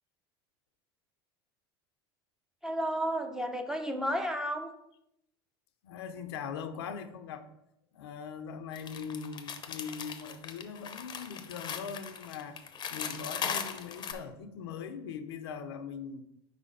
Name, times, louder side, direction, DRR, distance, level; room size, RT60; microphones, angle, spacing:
voice 1, 2.6-4.7, equal, 5° right, 5 dB, 0.7 m, -32 dB
voice 2, 5.8-7.4 7.9-12.6 12.9-16.2, left 6 dB, 85° left, 8 dB, 0.7 m, -41 dB
sound 1, 8.7-14.1, left 7 dB, 35° left, 0.7 m, -39 dB
4.9 x 4.1 x 4.9 m, 0.80 s
supercardioid pair, 100°, 13 cm